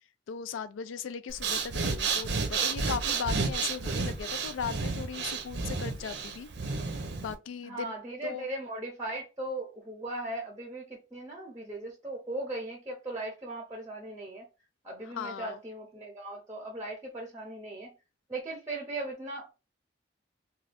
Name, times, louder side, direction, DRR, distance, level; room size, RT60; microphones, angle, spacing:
voice 1, 0.3-6.5 7.2-8.0 8.2-8.5 15.1-15.6, left 7 dB, 90° left, 0.3 m, -38 dB
Breathing, 1.3-7.3, right 4 dB, 65° right, 0.5 m, -31 dB
voice 2, 7.6-14.4 14.8-17.9 18.3-19.5, right 2 dB, 15° right, 0.6 m, -38 dB
2.6 x 2.3 x 3.3 m
head